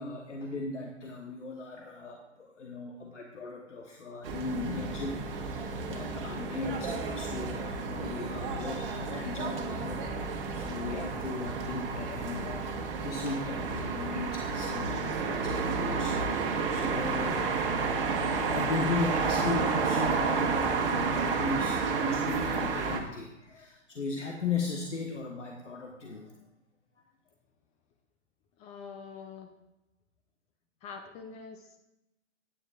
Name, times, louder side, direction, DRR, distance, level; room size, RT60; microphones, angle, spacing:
voice 1, 0.0-10.1 10.5-26.3, left 4 dB, 80° left, 2 dB, 1.2 m, -37 dB
sound 1, 4.2-23.0, right 4 dB, 50° right, 1.5 m, -31 dB
voice 2, 28.6-29.5 30.8-31.8, left 5 dB, 20° left, 5 dB, 0.5 m, -45 dB
14.0 x 9.8 x 2.5 m, 0.94 s
figure-of-eight pair, 115°, 36 cm